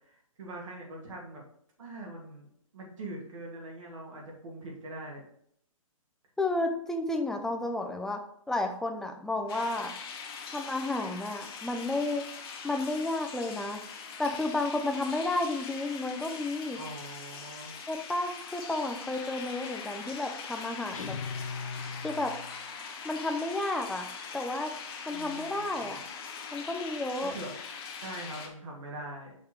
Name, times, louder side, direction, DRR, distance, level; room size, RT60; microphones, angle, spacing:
voice 1, 0.0-1.4 1.8-5.2 16.7-17.7 25.1-26.0 27.2-27.5 28.0-29.4, right 2 dB, 65° right, -2 dB, 2.8 m, -43 dB
voice 2, 6.4-8.2 8.5-9.9 10.5-12.2 12.6-13.8 14.2-16.8 17.9-21.1 22.0-22.3 23.0-24.7 25.1-26.0 26.5-27.3, left 2 dB, 5° left, 4 dB, 0.5 m, -32 dB
sound 1, 9.5-28.5, left 6 dB, 45° left, 1.3 m, -42 dB
sound 2, 20.9-22.6, left 4 dB, 70° left, 0.9 m, -39 dB
5.8 x 4.4 x 4.6 m, 0.67 s
figure-of-eight pair, 135°, 18 cm